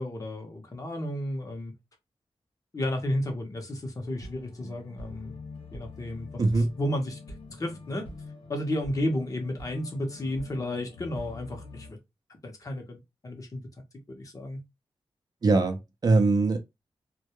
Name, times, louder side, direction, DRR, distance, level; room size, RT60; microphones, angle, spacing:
voice 1, 0.0-1.7 2.7-5.4 5.7-6.4 6.8-7.2 7.6-8.1 8.5-12.0 12.3-13.6 14.1-14.6, left 1 dB, 35° left, 0.7 m, -32 dB
sound 1, 4.0-11.9, left 2 dB, 65° left, 0.9 m, -45 dB
voice 2, 6.4-6.7 15.4-16.6, right 3 dB, 40° right, 0.4 m, -22 dB
2.2 x 2.0 x 2.8 m
wide cardioid pair, 115°, 10 cm